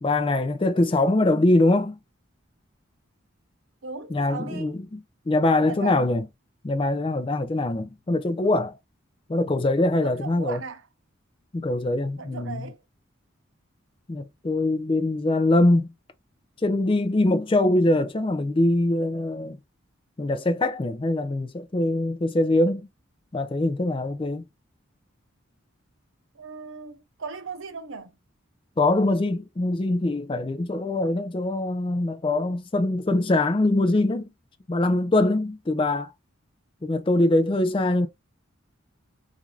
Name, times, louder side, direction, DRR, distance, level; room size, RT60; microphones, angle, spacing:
voice 1, 0.0-2.0 4.1-6.3 6.6-8.8 9.3-10.6 11.5-12.7 14.1-15.9 16.6-19.6 20.2-22.9 23.3-24.4 28.8-34.3 34.7-36.1 36.8-38.1, left 2 dB, 25° left, 0.4 m, -23 dB
voice 2, 3.8-4.7 5.6-6.1 10.0-10.8 12.2-12.8 26.3-28.2, right 4 dB, 70° right, 0.7 m, -37 dB
4.5 x 2.5 x 2.4 m
head